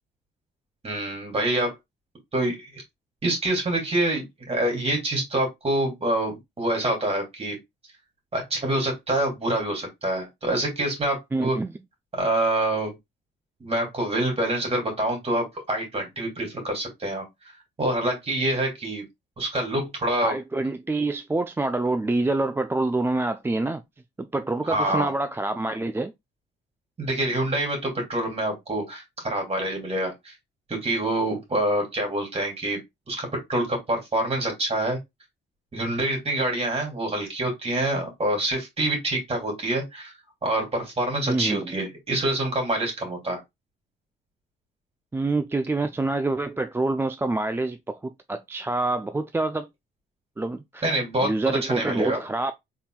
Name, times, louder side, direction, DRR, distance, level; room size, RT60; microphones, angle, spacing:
voice 1, 0.8-1.7 2.3-2.8 3.2-7.6 8.3-11.6 12.1-12.9 13.6-17.3 17.8-19.0 19.4-20.3 24.6-25.1 27.0-30.3 30.7-32.8 33.1-35.0 35.7-40.1 40.4-43.4 50.8-52.2, right 1 dB, 30° right, 2.6 m, -26 dB
voice 2, 11.3-11.7 20.2-23.8 24.2-26.1 41.3-41.7 45.1-49.7 50.4-50.8 51.2-52.5, right 2 dB, 10° right, 0.4 m, -26 dB
4.3 x 3.7 x 2.3 m
cardioid pair, 90°, 20 cm